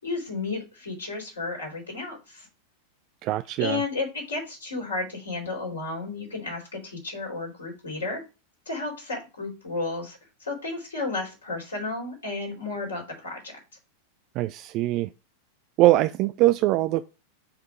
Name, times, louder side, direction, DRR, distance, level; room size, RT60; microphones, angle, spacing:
voice 1, 0.0-2.5 3.6-8.2 8.7-13.6, left 3 dB, 70° left, 3.9 m, -32 dB
voice 2, 3.2-3.8 14.4-15.1 15.8-17.0, right 16 dB, 40° right, 0.3 m, -22 dB
7.1 x 3.6 x 4.9 m
figure-of-eight pair, 90°, 0 cm